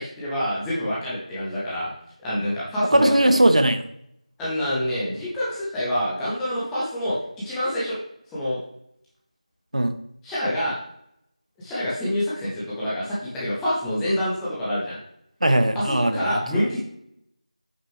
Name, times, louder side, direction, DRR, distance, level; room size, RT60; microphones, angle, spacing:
voice 1, 0.0-1.9 2.2-3.1 4.4-7.2 7.4-8.0 8.3-8.6 10.2-10.8 11.6-15.0 15.7-16.8, equal, 5° left, -9 dB, 0.7 m, -26 dB
voice 2, 2.9-3.8 9.7-9.9 15.4-16.6, right 1 dB, 65° right, 9 dB, 0.7 m, -19 dB
8.4 x 5.7 x 3.3 m, 0.76 s
figure-of-eight pair, 170°, 4 cm